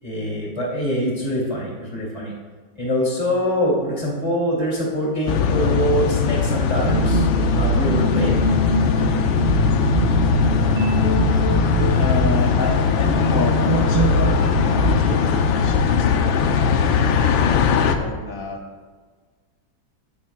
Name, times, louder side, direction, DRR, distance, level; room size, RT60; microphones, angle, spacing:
voice 1, 0.0-2.3 2.7-7.3 7.5-8.4, equal, 20° left, -4 dB, 2.5 m, -24 dB
sound 1, 5.3-18.0, left 7 dB, 90° left, 1.4 m, -20 dB
sound 2, 6.8-16.4, right 1 dB, 75° right, 2.2 m, -22 dB
voice 2, 11.9-17.7 17.9-18.6, left 3 dB, 50° left, 2 dB, 1.4 m, -29 dB
14.0 x 9.3 x 2.3 m, 1.4 s
omnidirectional pair, 2.0 m